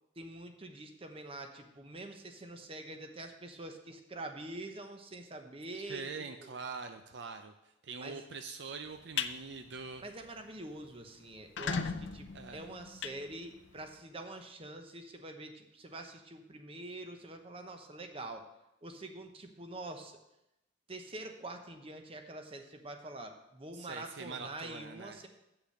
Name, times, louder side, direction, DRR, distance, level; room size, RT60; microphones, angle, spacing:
voice 1, 0.2-6.1 6.4-6.5 8.0-8.2 10.0-18.5 18.8-20.2 20.9-25.3, right 2 dB, 30° right, 5 dB, 0.9 m, -45 dB
voice 2, 5.9-10.0 12.3-12.6 23.7-25.2, right 4 dB, 60° right, 7 dB, 0.5 m, -44 dB
sound 1, 8.9-9.3 9.8-10.0 10.4-10.5 10.7-10.8 11.3-13.9, left 6 dB, 70° left, 0.6 m, -37 dB
8.3 x 5.9 x 6.5 m, 0.87 s
head